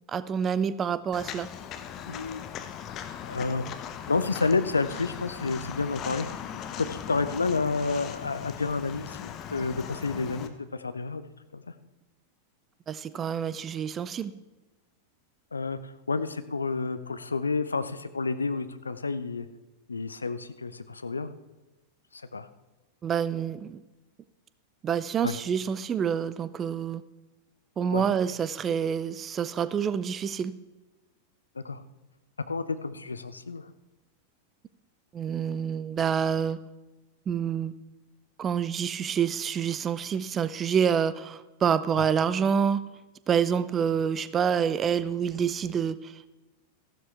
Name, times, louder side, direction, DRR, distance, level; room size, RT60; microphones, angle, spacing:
voice 1, 0.1-1.5 12.9-14.3 23.0-23.8 24.8-27.0 27.8-30.5 35.1-36.6 37.3-37.7 38.4-42.8 43.3-46.3, right 7 dB, 25° right, 16 dB, 0.5 m, -27 dB
Walk footsteps, 1.1-10.5, left 9 dB, 35° left, 0.8 m, -39 dB
voice 2, 2.1-2.4 3.2-3.6 4.1-6.3 6.5-11.2 11.5-11.6 15.5-19.5 19.9-21.3 22.1-22.5 25.2-25.4 27.9-28.0 31.5-31.8 32.5-33.7 42.0-42.1, left 4 dB, 75° left, 11 dB, 0.6 m, -30 dB
14.0 x 12.0 x 3.4 m, 1.1 s
figure-of-eight pair, 90°, 0 cm